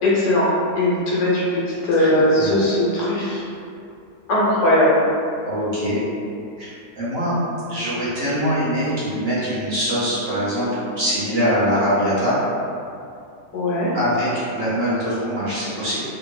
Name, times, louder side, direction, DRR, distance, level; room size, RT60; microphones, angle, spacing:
voice 1, 0.0-0.5 0.7-3.4 4.3-4.9 13.5-14.0, left 1 dB, 85° left, -7 dB, 1.5 m, -19 dB
voice 2, 1.9-2.6 5.4-6.0 6.6-7.4 7.7-10.7 11.0-12.4 13.9-16.0, equal, 45° right, -11 dB, 1.1 m, -23 dB
3.5 x 2.5 x 3.1 m, 2.5 s
omnidirectional pair, 1.7 m